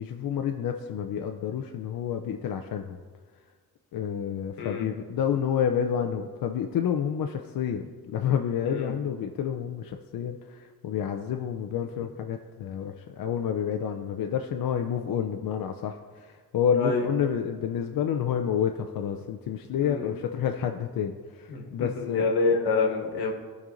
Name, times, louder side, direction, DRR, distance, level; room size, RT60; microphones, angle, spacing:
voice 1, 0.0-3.0 3.9-22.3, left 8 dB, 65° left, 5 dB, 0.6 m, -29 dB
voice 2, 16.7-17.1 19.8-20.1 21.5-23.3, left 4 dB, 85° left, 2 dB, 1.4 m, -27 dB
14.5 x 5.4 x 2.6 m, 1.5 s
cardioid pair, 75°, 38 cm